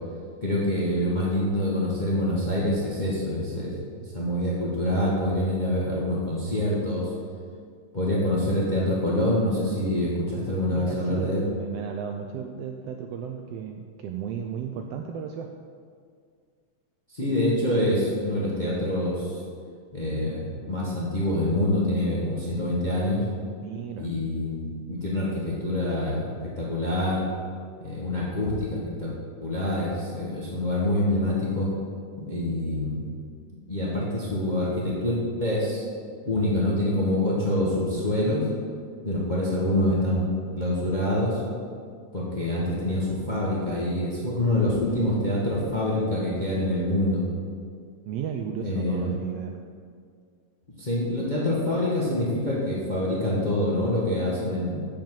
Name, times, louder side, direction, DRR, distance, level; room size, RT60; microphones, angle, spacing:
voice 1, 0.4-3.7 4.1-7.1 7.9-11.4 17.1-19.4 19.9-23.2 24.0-27.2 27.8-29.1 29.4-31.7 32.2-33.0 33.7-35.8 36.2-38.4 39.0-40.2 40.6-41.4 42.1-47.2 48.6-49.2 50.8-54.8, left 1 dB, 20° left, -5 dB, 1.2 m, -26 dB
voice 2, 10.7-15.5 23.6-24.1 48.0-49.6, right 7 dB, 80° right, 4 dB, 1.5 m, -34 dB
7.5 x 7.3 x 7.5 m, 2.1 s
omnidirectional pair, 3.3 m